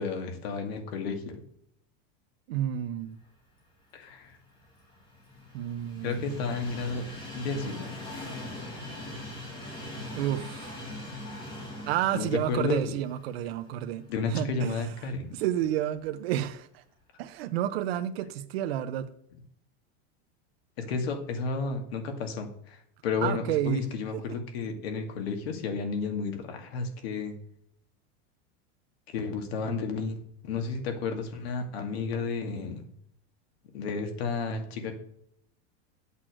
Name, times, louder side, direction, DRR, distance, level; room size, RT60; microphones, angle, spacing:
voice 1, 0.0-1.4 3.9-4.4 6.0-7.1 7.3-7.9 12.1-12.9 14.1-15.3 20.8-27.3 29.1-32.9 33.7-35.0, left 4 dB, 65° left, 2.3 m, -32 dB
voice 2, 2.5-3.2 5.5-6.5 10.1-10.7 11.9-14.9 15.3-16.8 17.2-19.1 23.2-23.8 24.1-24.2, right 12 dB, 65° right, 0.9 m, -30 dB
Train, 4.2-14.3 14.8-14.9 16.0-16.1, left 1 dB, 15° left, 2.2 m, -41 dB
9.0 x 8.3 x 6.3 m
supercardioid pair, 180°, 33 cm